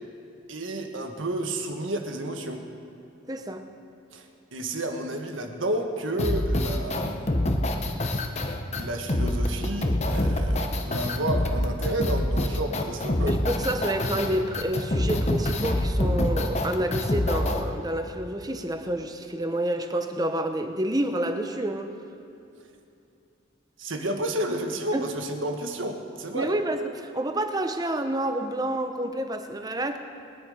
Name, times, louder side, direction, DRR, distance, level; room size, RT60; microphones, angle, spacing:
voice 1, 0.5-2.6 4.1-7.3 8.8-13.3 23.8-26.5, right 1 dB, 80° right, 4 dB, 1.5 m, -31 dB
voice 2, 3.3-3.6 13.3-21.9 24.9-25.1 26.3-30.0, right 1 dB, 20° right, 7 dB, 0.8 m, -28 dB
sound 1, 6.2-17.6, left 1 dB, 35° left, 1.0 m, -26 dB
21.0 x 10.5 x 5.1 m, 2.7 s
head